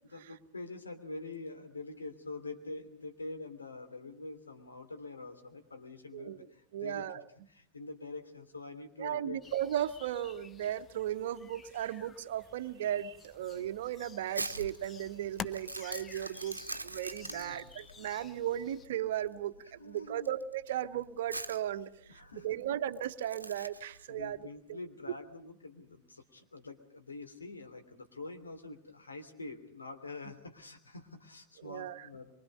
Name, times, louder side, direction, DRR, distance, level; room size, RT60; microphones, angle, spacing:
voice 1, 0.1-7.1 7.5-9.4 17.2-17.9 19.8-20.3 22.1-22.6 24.1-32.3, left 3 dB, 75° left, 5 dB, 3.0 m, -45 dB
voice 2, 6.7-7.2 9.0-24.4 24.7-24.8 31.6-32.1, right 11 dB, 55° right, 13 dB, 0.9 m, -36 dB
sound 1, 9.4-18.9, left 6 dB, 20° left, 0.9 m, -51 dB
Crumpling crinkling, 13.5-24.0, right 2 dB, 85° right, 0.9 m, -44 dB
25.0 x 24.0 x 5.3 m, 0.71 s
figure-of-eight pair, 90°, 0 cm